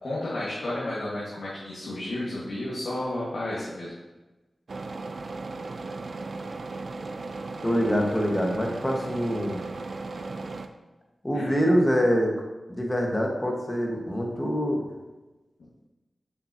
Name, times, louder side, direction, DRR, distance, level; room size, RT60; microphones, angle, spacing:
voice 1, 0.0-4.0 11.3-11.6, left 1 dB, 75° left, -9 dB, 1.9 m, -32 dB
sound 1, 4.7-10.7, right 3 dB, 70° right, 0.4 m, -36 dB
voice 2, 7.6-9.6 11.2-12.3 12.7-14.8, equal, 20° left, 0 dB, 1.5 m, -25 dB
6.8 x 5.9 x 2.9 m, 1.1 s
cardioid pair, 45°, 0 cm